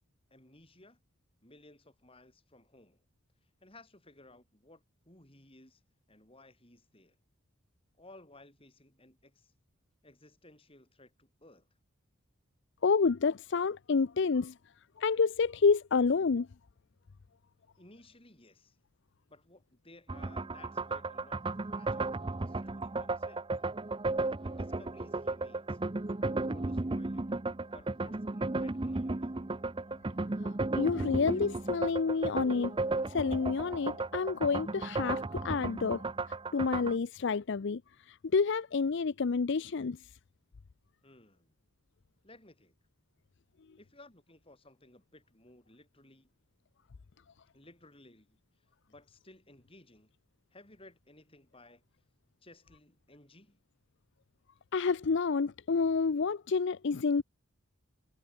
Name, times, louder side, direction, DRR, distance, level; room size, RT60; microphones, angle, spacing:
voice 1, 0.3-1.0 1.4-3.0 3.6-5.8 6.1-7.2 8.0-9.5 10.0-11.7 17.8-18.8 19.3-23.5 24.4-25.8 26.2-27.2 27.7-29.5 41.0-41.5 42.2-42.8 43.8-46.3 47.5-48.4 48.9-50.1 50.5-51.8 52.4-53.6, left 2 dB, 25° left, 7.3 m, -58 dB
voice 2, 12.8-14.6 15.0-16.5 30.4-32.8 33.1-40.1 54.7-57.2, left 5 dB, 55° left, 0.5 m, -29 dB
sound 1, 20.1-37.0, right 2 dB, 25° right, 0.6 m, -34 dB
head